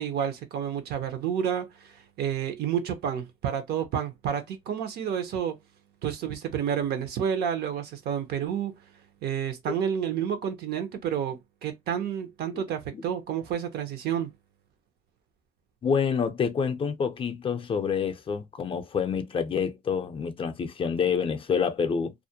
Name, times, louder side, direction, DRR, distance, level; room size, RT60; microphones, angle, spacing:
voice 1, 0.0-5.6 6.0-8.7 9.2-14.3, right 8 dB, 70° right, 0.7 m, -30 dB
voice 2, 15.8-22.1, left 6 dB, 35° left, 0.4 m, -27 dB
2.4 x 2.1 x 2.7 m
cardioid pair, 110°, 17 cm